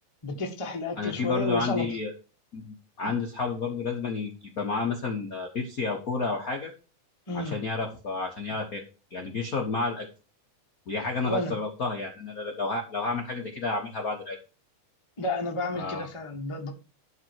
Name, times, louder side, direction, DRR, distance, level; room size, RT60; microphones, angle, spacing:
voice 1, 0.2-1.8 3.0-3.1 7.3-7.6 11.3-11.5 15.2-16.7, left 2 dB, 25° left, 2 dB, 0.6 m, -31 dB
voice 2, 1.0-2.1 2.5-6.7 7.3-8.8 9.1-10.1 10.9-14.4 15.7-16.1, left 3 dB, 70° left, 2 dB, 0.8 m, -30 dB
11.5 x 4.1 x 6.3 m, 0.33 s
omnidirectional pair, 3.6 m